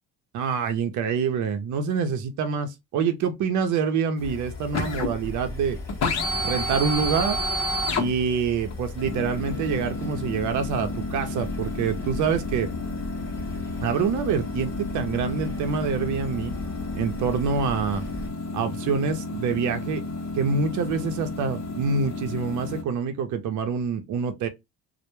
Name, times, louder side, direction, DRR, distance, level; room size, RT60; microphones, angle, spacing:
voice 1, 0.3-5.8 6.4-7.4 8.0-12.7 13.8-16.5 17.0-18.0 18.5-20.0 20.4-24.5, right 6 dB, 75° right, 0.6 m, -26 dB
sound 1, 4.2-22.8, left 2 dB, 60° left, 0.6 m, -31 dB
sound 2, 4.2-18.3, left 2 dB, 10° left, 0.8 m, -38 dB
2.1 x 2.0 x 2.9 m
cardioid pair, 90°, 30 cm